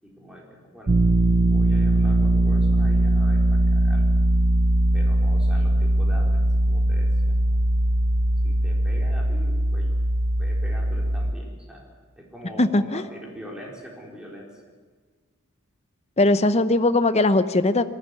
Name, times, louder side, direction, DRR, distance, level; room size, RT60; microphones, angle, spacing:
voice 1, 0.0-0.9 1.5-4.1 4.9-7.6 8.4-9.9 10.3-11.9 12.2-14.5, equal, 5° right, -2 dB, 4.3 m, -43 dB
sound 1, 0.9-11.3, right 1 dB, 35° right, 0.6 m, -20 dB
voice 2, 12.6-13.0 16.2-17.8, left 2 dB, 30° left, 11 dB, 0.8 m, -19 dB
21.0 x 16.0 x 9.9 m, 1.5 s
head